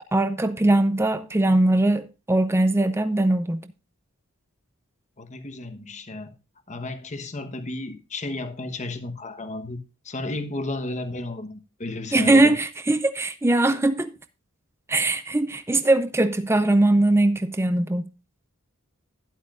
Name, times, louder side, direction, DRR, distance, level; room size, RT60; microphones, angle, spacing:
voice 1, 0.1-3.6 12.1-14.1 14.9-18.1, right 2 dB, 10° right, 0.5 m, -21 dB
voice 2, 5.2-6.3 6.7-9.8 10.0-12.5, left 2 dB, 35° left, 1.2 m, -33 dB
12.0 x 11.0 x 2.5 m
head